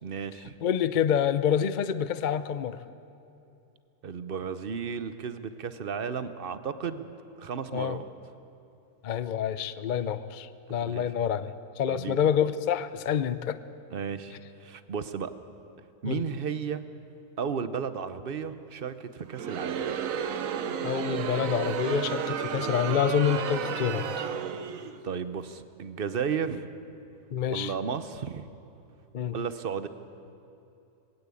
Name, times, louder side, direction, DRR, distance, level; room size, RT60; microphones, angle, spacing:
voice 1, 0.0-0.5 4.0-7.1 7.4-8.0 10.7-11.1 11.9-12.2 13.9-15.3 16.0-16.8 17.4-19.9 25.0-26.7 27.5-28.5 29.3-29.9, right 6 dB, 45° right, 12 dB, 0.8 m, -34 dB
voice 2, 0.6-2.8 7.7-8.0 9.0-13.6 16.1-16.2 20.8-24.1 27.3-27.7 29.1-29.3, left 8 dB, 60° left, 13 dB, 0.5 m, -27 dB
Crowd, 19.3-25.0, right 8 dB, 60° right, 1.2 m, -32 dB
20.5 x 17.0 x 8.5 m, 2.8 s
omnidirectional pair, 1.7 m